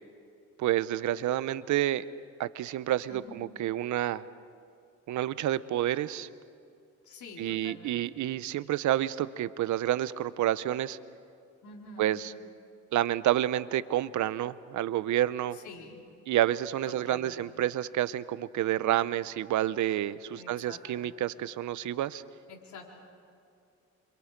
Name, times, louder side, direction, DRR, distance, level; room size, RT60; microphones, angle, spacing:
voice 1, 0.6-2.1 2.4-4.3 5.1-6.3 7.4-11.0 12.0-12.3 12.9-15.6 16.3-22.2, right 13 dB, 75° right, 16 dB, 0.8 m, -29 dB
voice 2, 7.0-8.2 11.6-12.2 15.5-16.0 16.9-17.6 20.3-21.1 22.5-22.9, left 3 dB, 70° left, -1 dB, 4.6 m, -47 dB
28.0 x 25.5 x 5.2 m, 2.4 s
cardioid pair, 90°, 30 cm